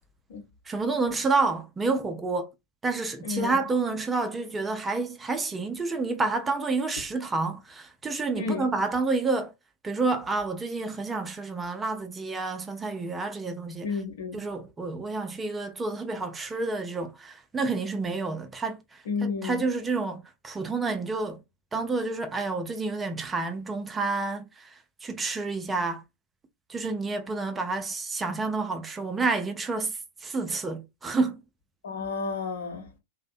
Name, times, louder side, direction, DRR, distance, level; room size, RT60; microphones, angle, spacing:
voice 1, 0.7-2.5 2.8-9.5 9.8-14.0 14.3-18.8 19.2-21.4 21.7-24.7 25.0-26.0 26.7-29.9 30.2-31.4, right 3 dB, 15° right, 0.4 m, -29 dB
voice 2, 3.2-3.6 8.3-8.7 13.8-14.4 19.1-19.6 31.8-32.9, left 4 dB, 60° left, 0.7 m, -31 dB
2.5 x 2.0 x 2.4 m
figure-of-eight pair, 90°, 0 cm